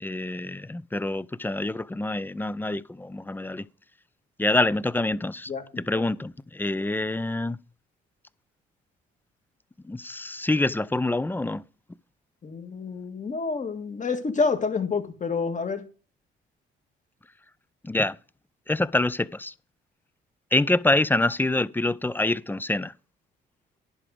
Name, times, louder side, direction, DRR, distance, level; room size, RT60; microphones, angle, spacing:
voice 1, 0.0-3.7 4.4-5.5 5.8-7.6 9.8-11.6 17.8-18.2 18.7-19.5 20.5-22.9, left 2 dB, 10° left, 0.4 m, -26 dB
voice 2, 12.4-15.8, left 4 dB, 40° left, 1.7 m, -28 dB
11.0 x 4.9 x 6.4 m
cardioid pair, 90°, 20 cm